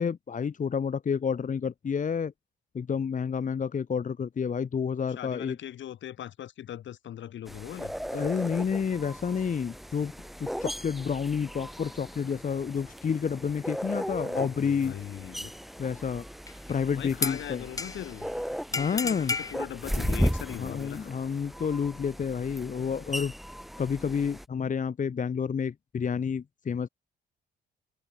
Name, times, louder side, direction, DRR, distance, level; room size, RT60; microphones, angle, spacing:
voice 1, 0.0-2.3 2.7-5.5 8.1-10.1 10.4-14.9 15.8-16.2 16.7-17.6 18.7-19.3 20.6-23.3 23.8-26.9, left 6 dB, 40° left, 1.7 m, -29 dB
voice 2, 5.1-7.9 14.1-15.5 17.0-18.3 18.7-21.1, left 11 dB, 70° left, 3.7 m, -40 dB
sound 1, 7.5-24.5, equal, ahead, 1.8 m, -36 dB
sound 2, 16.5-16.7 17.2-18.2 18.7-19.5, left 4 dB, 15° left, 0.5 m, -32 dB
cardioid pair, 90°, 20 cm